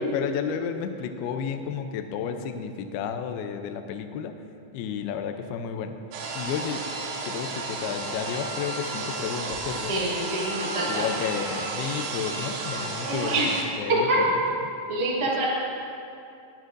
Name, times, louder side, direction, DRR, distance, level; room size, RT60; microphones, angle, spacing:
voice 1, 0.0-4.3 4.7-5.9 6.4-6.8 7.3-9.9 10.9-14.4, left 7 dB, 80° left, 7 dB, 2.3 m, -32 dB
sound 1, 6.1-13.6, right 3 dB, 85° right, 3.6 m, -32 dB
voice 2, 9.9-11.0 13.0-13.5 13.9-14.2 14.9-15.4, right 2 dB, 35° right, -7 dB, 0.6 m, -26 dB
22.0 x 9.1 x 2.6 m, 2.6 s
omnidirectional pair, 5.2 m